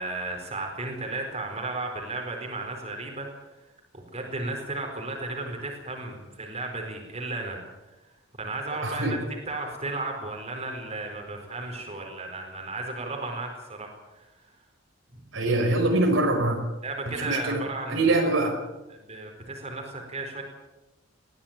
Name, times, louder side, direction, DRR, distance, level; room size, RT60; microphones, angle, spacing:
voice 1, 0.0-3.3 3.9-7.6 8.4-9.2 9.5-13.9 14.2-14.3 15.1-15.2 16.8-18.3 18.9-20.4, right 2 dB, 35° right, 2 dB, 4.6 m, -34 dB
voice 2, 8.8-9.1 15.3-16.6 17.1-17.6 17.9-18.5, right 2 dB, 75° right, 2 dB, 5.4 m, -23 dB
21.0 x 16.0 x 9.0 m, 1.1 s
head